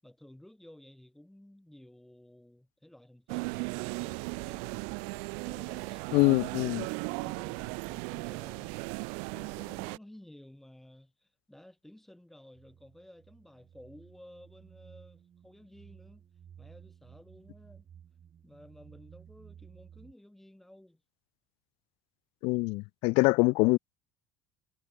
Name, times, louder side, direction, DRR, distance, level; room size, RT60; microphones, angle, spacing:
voice 1, 0.0-4.8 5.5-6.1 7.0-8.8 9.3-16.2 16.6-17.9 18.4-21.0, left 1 dB, 5° left, 6.5 m, -54 dB
sound 1, 3.3-10.0, right 40 dB or more, 75° right, 2.3 m, -37 dB
voice 2, 6.1-6.9 22.4-23.8, left 27 dB, 65° left, 0.7 m, -24 dB
sound 2, 12.5-20.1, right 9 dB, 30° right, 5.8 m, -55 dB
cardioid pair, 170°, 10 cm